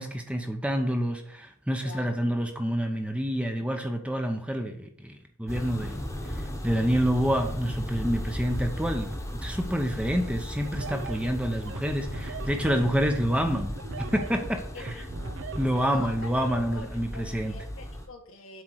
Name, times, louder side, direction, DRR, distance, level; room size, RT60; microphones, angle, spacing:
voice 1, 0.0-6.0 6.3-9.1 9.4-14.9 15.6-17.6, equal, 5° right, 4 dB, 0.8 m, -28 dB
voice 2, 1.8-2.2 14.7-15.4 15.8-18.6, left 3 dB, 75° left, 3 dB, 1.6 m, -44 dB
sound 1, 5.5-18.1, left 1 dB, 15° left, 1.2 m, -36 dB
sound 2, 10.6-16.6, right 4 dB, 60° right, 0.6 m, -39 dB
7.7 x 4.4 x 6.3 m, 0.63 s
head